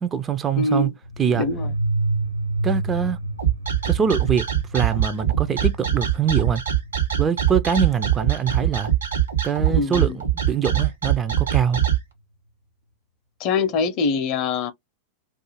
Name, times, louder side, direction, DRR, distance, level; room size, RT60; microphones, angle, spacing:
voice 1, 0.0-0.9 1.2-1.4 2.6-3.2 3.9-6.6 7.2-8.9 9.4-11.8, right 7 dB, 20° right, 0.3 m, -23 dB
voice 2, 0.6-0.9 1.3-1.7 9.7-10.2 13.4-14.7, left 4 dB, 40° left, 0.5 m, -23 dB
sound 1, 1.0-9.4, right 2 dB, 90° right, 0.6 m, -30 dB
sound 2, 3.4-12.0, right 11 dB, 70° right, 1.0 m, -22 dB
2.4 x 2.4 x 2.9 m
figure-of-eight pair, 90°, 0 cm